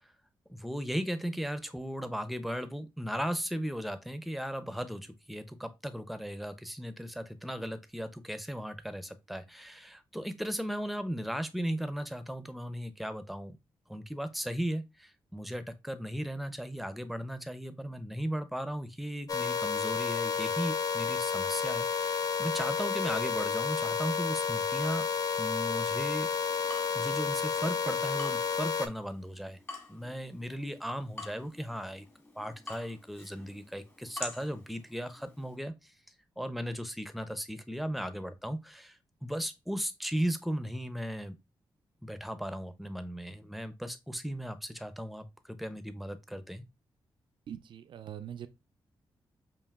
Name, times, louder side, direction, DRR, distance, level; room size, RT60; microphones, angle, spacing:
voice 1, 0.5-13.6 13.9-25.1 25.4-26.3 26.9-29.6 29.9-32.1 32.4-35.9 36.4-41.4 42.0-46.6, equal, ahead, 0.6 m, -36 dB
sound 1, 19.3-28.9, left 6 dB, 45° left, 0.6 m, -31 dB
Water tap faucet / Drip, 26.3-35.6, left 2 dB, 25° left, 1.4 m, -48 dB
voice 2, 47.5-48.5, right 9 dB, 65° right, 0.4 m, -42 dB
5.5 x 2.5 x 2.4 m
cardioid pair, 70°, 9 cm